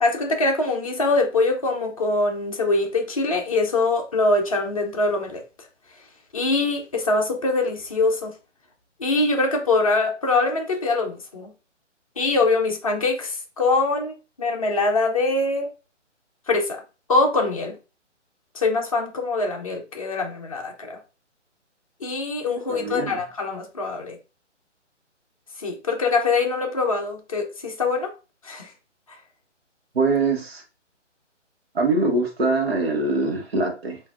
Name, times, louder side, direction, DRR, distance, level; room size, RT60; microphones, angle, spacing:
voice 1, 0.0-5.4 6.3-8.3 9.0-11.5 12.2-15.7 16.5-16.8 17.1-17.8 18.5-21.0 22.0-24.2 25.6-28.1 28.4-28.7, left 3 dB, 30° left, 0.7 m, -23 dB
voice 2, 22.7-23.2 29.9-30.6 31.7-34.0, right 3 dB, 55° right, 1.3 m, -23 dB
5.7 x 2.6 x 2.4 m
figure-of-eight pair, 145°, 37 cm